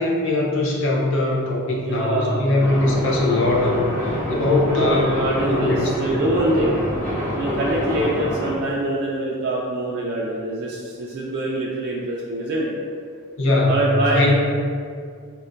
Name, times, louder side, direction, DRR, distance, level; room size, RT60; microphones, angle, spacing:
voice 1, 0.0-5.1 5.4-5.9 13.4-13.8 14.1-14.4, left 2 dB, 60° left, -2 dB, 0.5 m, -21 dB
voice 2, 1.8-2.5 4.7-6.8 7.3-12.8 13.6-14.4, right 1 dB, 50° right, -4 dB, 0.3 m, -24 dB
sound 1, 2.6-8.6, equal, 10° left, 1.0 m, -26 dB
4.2 x 2.2 x 2.5 m, 2.2 s
head